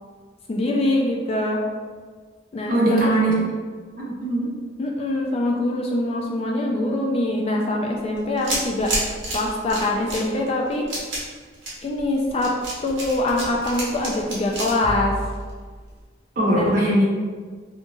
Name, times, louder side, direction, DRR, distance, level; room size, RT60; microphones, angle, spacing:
voice 1, 0.5-1.6 2.5-3.1 4.4-4.5 4.8-8.9 9.3-10.9 11.8-12.5 12.8-15.2 16.6-16.8, left 1 dB, 30° left, -1 dB, 0.3 m, -24 dB
voice 2, 2.7-3.3 4.0-4.5 16.4-17.0, right 1 dB, 45° right, -5 dB, 0.9 m, -20 dB
sound 1, 8.1-15.9, right 1 dB, 80° right, 1.1 m, -30 dB
3.5 x 2.9 x 2.3 m, 1.5 s
head